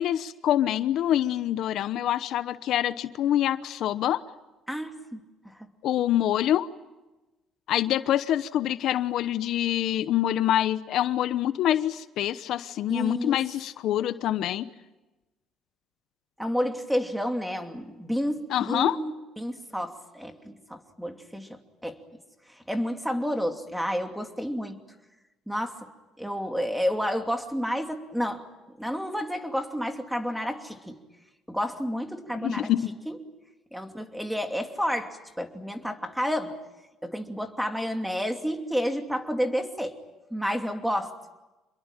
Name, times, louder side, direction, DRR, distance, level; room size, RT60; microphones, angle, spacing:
voice 1, 0.0-4.2 5.8-6.7 7.7-14.7 18.5-19.0 32.4-32.8, left 12 dB, 70° left, 13 dB, 0.9 m, -25 dB
voice 2, 4.7-5.2 5.5-5.7 12.9-13.4 16.4-22.0 22.5-24.8 25.5-25.9 26.2-28.4 28.8-31.0 31.5-32.7 33.1-33.2 33.7-36.6 37.0-39.9 40.3-41.1, equal, ahead, 5 dB, 2.8 m, -30 dB
27.5 x 22.0 x 9.1 m, 1.1 s
cardioid pair, 110°, 0 cm